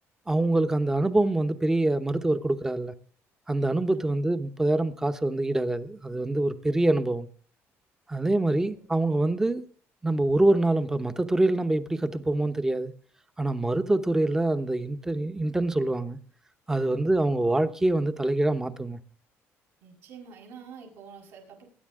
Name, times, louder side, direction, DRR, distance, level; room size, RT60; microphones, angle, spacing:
voice 1, 0.3-2.9 3.5-7.3 8.1-9.6 10.0-12.9 13.4-16.2 16.7-19.0, right 2 dB, 10° right, 0.9 m, -25 dB
voice 2, 8.4-8.9 16.8-17.1 19.8-21.7, right 6 dB, 75° right, 6.1 m, -48 dB
21.0 x 9.6 x 3.6 m
cardioid pair, 150°, 5 cm